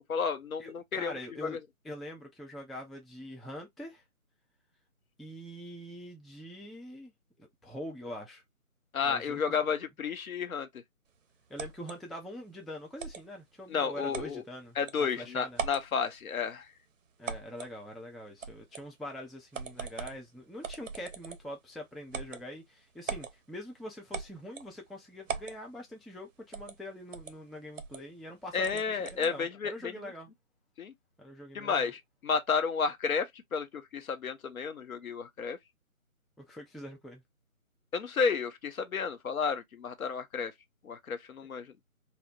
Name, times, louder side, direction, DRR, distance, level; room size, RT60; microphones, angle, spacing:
voice 1, 0.0-1.6 8.9-10.8 13.7-14.4 14.8-16.7 28.5-29.9 30.8-30.9 31.5-35.6 37.9-40.5 40.8-41.7, left 5 dB, 75° left, 0.7 m, -32 dB
voice 2, 0.6-1.6 1.8-4.0 5.2-7.1 7.4-8.4 9.0-9.6 11.5-15.6 17.2-30.3 31.2-31.9 36.4-37.2, left 1 dB, ahead, 0.3 m, -44 dB
sound 1, 11.6-12.0 13.0-13.2 14.1-14.3 14.9-15.0 15.5-15.9 17.2-17.7 18.4-18.9 19.5-20.2 20.6-21.5 22.1-22.4 23.1-23.3 24.1-24.7 25.3-25.6 26.5-26.8 27.1-27.3 27.8-28.0 28.6-29.3, right 6 dB, 60° right, 0.5 m, -39 dB
2.8 x 2.0 x 2.3 m
hypercardioid pair, 175°, 43 cm